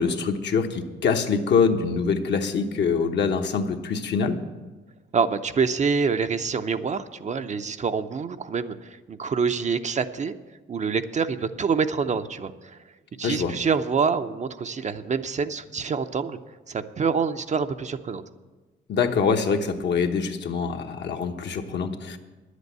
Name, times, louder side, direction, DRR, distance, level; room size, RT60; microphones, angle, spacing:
voice 1, 0.0-4.4 13.2-13.5 18.9-22.2, left 5 dB, 60° left, 5 dB, 1.1 m, -24 dB
voice 2, 5.1-10.4 10.7-12.8 13.2-16.4 16.7-18.2, right 5 dB, 35° right, 9 dB, 0.6 m, -26 dB
10.0 x 8.1 x 8.2 m, 1.3 s
cardioid pair, 90°, 20 cm